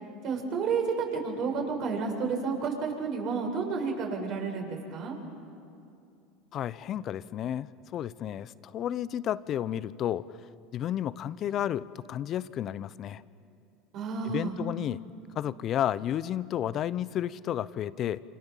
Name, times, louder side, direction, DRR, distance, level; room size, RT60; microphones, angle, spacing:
voice 1, 0.2-5.2 13.9-14.6, right 5 dB, 50° right, 1 dB, 6.9 m, -31 dB
voice 2, 6.5-10.3 10.7-13.2 14.2-15.0 15.3-18.2, left 11 dB, 45° left, 18 dB, 0.8 m, -32 dB
28.0 x 27.5 x 7.5 m, 2.5 s
hypercardioid pair, 90°, 0 cm